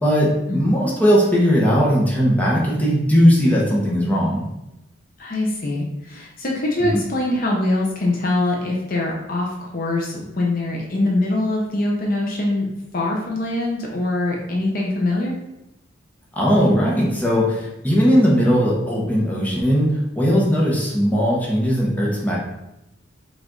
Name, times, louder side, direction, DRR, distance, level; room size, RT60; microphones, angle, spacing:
voice 1, 0.0-4.5 6.9-7.0 16.3-19.9 20.2-22.4, equal, 10° left, -5 dB, 0.9 m, -18 dB
voice 2, 5.2-12.7 12.9-15.3, left 2 dB, 45° left, -2 dB, 0.7 m, -23 dB
4.9 x 2.6 x 3.7 m, 0.90 s
head